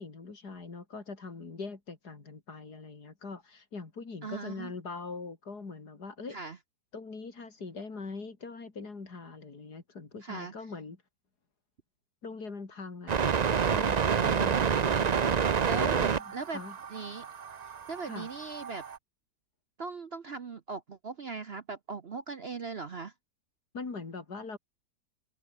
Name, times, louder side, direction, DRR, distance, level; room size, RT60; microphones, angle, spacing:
voice 1, 0.0-6.4 6.9-11.0 12.2-15.4 15.8-16.1 16.5-16.8 18.1-18.3 23.7-24.6, left 4 dB, 65° left, 3.8 m, -42 dB
voice 2, 4.2-4.7 6.3-6.6 10.2-10.5 14.1-14.8 15.7-16.0 16.3-16.6 16.9-17.2 17.9-18.8 19.8-23.1, right 4 dB, 45° right, 1.0 m, -39 dB
sound 1, 13.1-19.0, right 6 dB, 80° right, 0.3 m, -28 dB
omnidirectional pair, 1.8 m